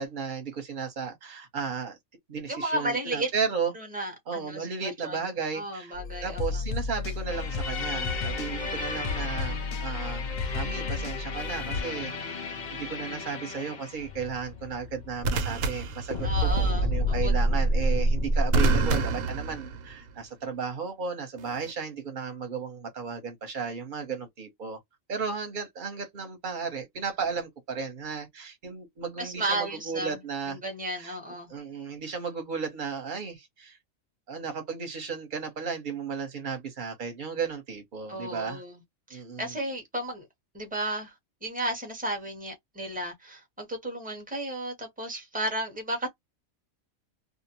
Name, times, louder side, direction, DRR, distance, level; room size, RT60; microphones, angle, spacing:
voice 1, 0.0-2.0 2.3-3.7 4.3-5.9 6.2-10.2 10.5-24.8 25.1-30.6 30.9-31.2 31.5-33.8 34.3-38.6 39.1-39.6, right 5 dB, 40° right, 1.0 m, -34 dB
voice 2, 2.5-3.3 3.7-5.2 5.5-6.6 16.2-17.3 29.2-30.2 30.5-31.5 38.1-38.8 39.1-40.3 40.5-41.1 41.4-46.1, right 1 dB, 5° right, 0.8 m, -33 dB
sound 1, 5.9-11.8, left 4 dB, 60° left, 0.7 m, -33 dB
sound 2, 7.3-18.9, equal, 80° left, 0.4 m, -29 dB
sound 3, 11.4-11.7 15.2-16.7 18.5-20.2 21.4-21.7, right 4 dB, 85° right, 1.0 m, -30 dB
2.5 x 2.1 x 2.7 m
omnidirectional pair, 1.4 m